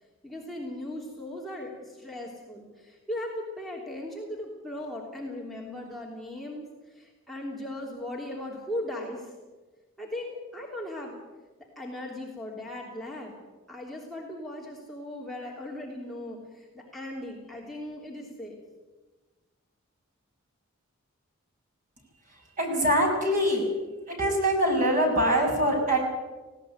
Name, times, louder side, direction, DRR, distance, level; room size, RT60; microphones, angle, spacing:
voice 1, 0.2-9.3 10.0-11.1 11.7-13.3 13.7-18.6, left 1 dB, ahead, -3 dB, 3.2 m, -38 dB
voice 2, 22.6-23.7 24.1-26.0, equal, 40° right, 1 dB, 6.7 m, -23 dB
19.0 x 17.0 x 9.4 m, 1.3 s
head